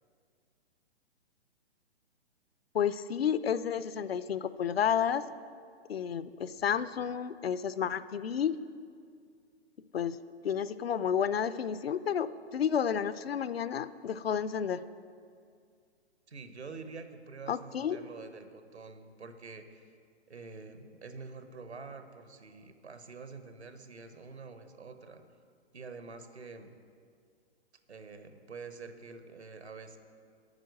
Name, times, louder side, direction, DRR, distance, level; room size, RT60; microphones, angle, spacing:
voice 1, 2.7-5.2 5.9-8.6 9.9-10.2 10.4-14.8 17.5-18.0, left 8 dB, 65° left, 14 dB, 0.5 m, -31 dB
voice 2, 16.3-19.9 20.3-25.2 25.7-26.7 27.9-30.0, right 4 dB, 80° right, 8 dB, 1.1 m, -47 dB
9.0 x 6.2 x 8.1 m, 2.2 s
figure-of-eight pair, 125°, 33 cm